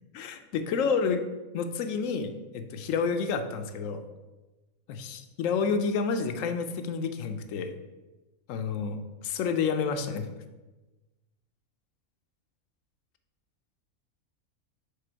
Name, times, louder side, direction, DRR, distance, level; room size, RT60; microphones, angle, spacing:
voice 1, 0.2-1.3 1.5-4.0 4.9-7.8 8.5-10.3, left 5 dB, 70° left, 8 dB, 0.9 m, -29 dB
6.7 x 3.5 x 4.5 m, 1.1 s
omnidirectional pair, 1.5 m